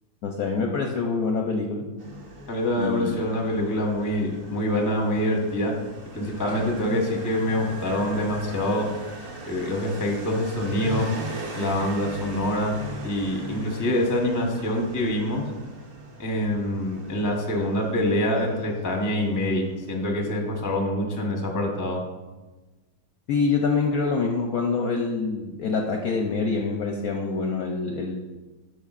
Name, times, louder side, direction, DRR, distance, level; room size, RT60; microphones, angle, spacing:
voice 1, 0.2-1.8 2.8-3.2 23.3-28.1, left 4 dB, 70° left, 1 dB, 0.9 m, -25 dB
Motorcycle, 2.0-20.8, right 1 dB, 40° right, 0.8 m, -39 dB
voice 2, 2.5-5.7 6.1-8.9 9.5-11.1 11.5-15.4 16.2-22.0, left 1 dB, 15° left, 1 dB, 0.6 m, -25 dB
12.0 x 4.7 x 2.5 m, 1.2 s
omnidirectional pair, 2.1 m